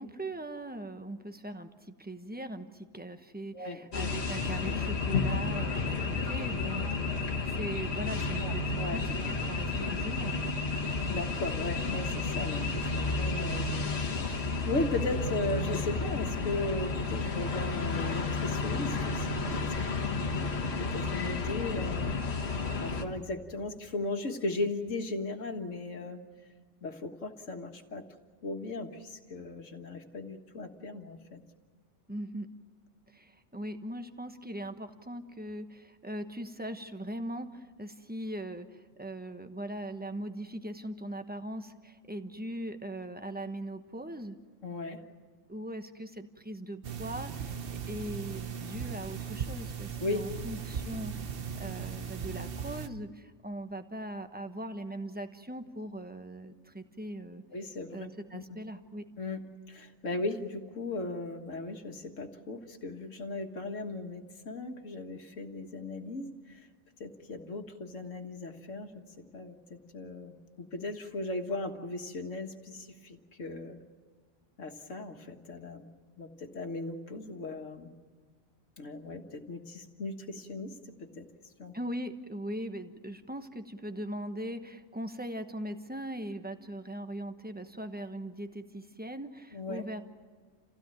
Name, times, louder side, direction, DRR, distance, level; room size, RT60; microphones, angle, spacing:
voice 1, 0.0-6.9 7.5-10.4 32.1-32.5 33.1-44.4 45.5-57.4 57.9-59.1 81.7-90.0, right 1 dB, 10° right, 8 dB, 1.0 m, -40 dB
sound 1, 3.9-23.0, left 3 dB, 55° left, 1.8 m, -32 dB
voice 2, 8.3-9.0 10.8-13.9 14.3-20.3 20.8-22.1 22.8-26.2 26.8-28.0 28.4-31.4 44.6-45.0 50.0-50.2 57.5-58.4 59.2-59.4 59.7-66.6 67.0-69.0 69.3-73.8 74.6-75.9 76.2-77.9 78.8-80.7 81.0-81.3 81.6-81.7 89.5-89.8, left 2 dB, 75° left, 5 dB, 2.0 m, -37 dB
sound 2, 46.8-52.9, right 7 dB, 50° right, 1.1 m, -38 dB
28.5 x 16.5 x 9.1 m, 1.5 s
omnidirectional pair, 1.3 m